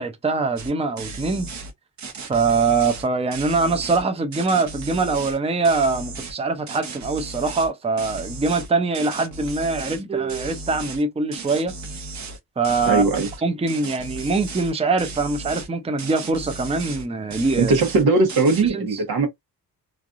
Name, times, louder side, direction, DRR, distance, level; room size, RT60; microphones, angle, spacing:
voice 1, 0.0-1.5 2.3-11.7 12.6-13.0 13.4-17.7 18.7-18.9, right 4 dB, 15° right, 0.6 m, -23 dB
sound 1, 0.6-0.7 1.0-1.7 2.0-4.0 4.3-5.4 5.6-6.4 6.7-7.7 8.0-10.0 10.3-11.0 11.3-12.4 12.6-13.4 13.7-14.7 15.0-15.7 16.0-17.1 17.3-18.0 18.3-18.7, right 3 dB, 50° right, 0.8 m, -35 dB
voice 2, 12.8-13.3 17.6-19.3, right 3 dB, 75° right, 1.1 m, -19 dB
3.2 x 2.6 x 2.4 m
cardioid pair, 90°, 37 cm